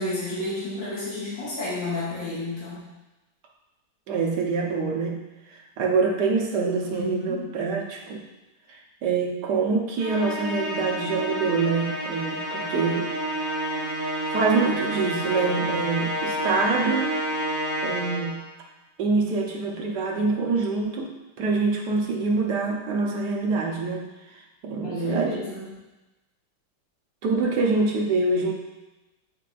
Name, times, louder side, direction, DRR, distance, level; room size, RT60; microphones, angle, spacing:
voice 1, 0.0-2.9 6.9-7.4 24.8-25.6, left 2 dB, 45° left, -10 dB, 2.3 m, -31 dB
voice 2, 4.1-5.2 5.8-8.2 8.7-13.1 14.3-17.1 17.8-18.4 19.0-21.1 21.4-24.0 24.6-25.4 27.2-28.5, right 4 dB, 65° right, 0 dB, 1.5 m, -25 dB
Musical instrument, 10.0-18.5, right 1 dB, 10° left, 2.1 m, -29 dB
8.8 x 5.2 x 2.5 m, 1.1 s
omnidirectional pair, 2.0 m